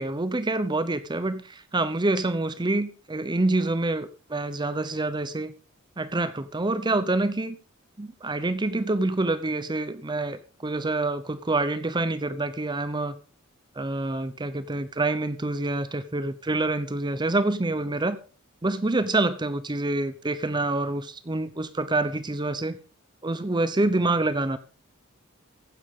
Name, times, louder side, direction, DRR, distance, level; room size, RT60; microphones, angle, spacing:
voice 1, 0.0-5.5 6.0-7.6 8.0-13.2 13.8-18.2 18.6-22.8 23.2-24.6, right 2 dB, 20° right, 0.7 m, -27 dB
15.0 x 10.0 x 3.7 m
head